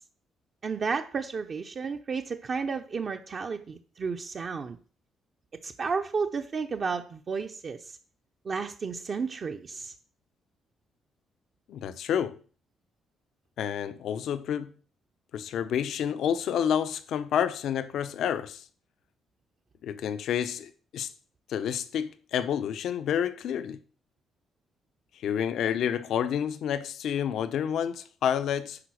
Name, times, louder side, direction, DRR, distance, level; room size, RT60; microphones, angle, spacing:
voice 1, 0.6-4.8 5.6-8.0 8.4-9.9, right 5 dB, 45° right, 0.8 m, -32 dB
voice 2, 11.7-12.4 13.6-14.7 15.3-18.6 19.8-21.1 21.5-23.8 25.2-28.8, left 9 dB, 75° left, 0.8 m, -29 dB
10.0 x 4.2 x 6.3 m
cardioid pair, 90°, 0 cm